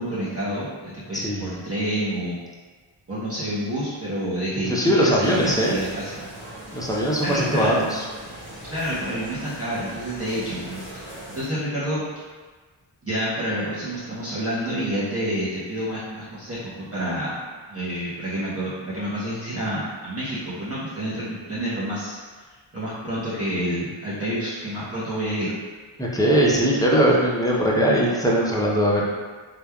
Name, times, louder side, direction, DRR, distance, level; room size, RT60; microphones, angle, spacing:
voice 1, 0.0-2.4 3.1-6.3 7.2-7.9 8.7-12.0 13.0-17.4 17.7-22.2 22.7-25.6, equal, 30° right, -11 dB, 0.8 m, -28 dB
voice 2, 1.1-1.5 4.7-5.8 6.7-8.0 26.0-29.0, equal, 10° left, -5 dB, 0.5 m, -20 dB
sound 1, 5.2-11.5, right 1 dB, 80° right, 1.3 m, -40 dB
3.2 x 2.3 x 2.2 m, 1.4 s
wide cardioid pair, 55°, 50 cm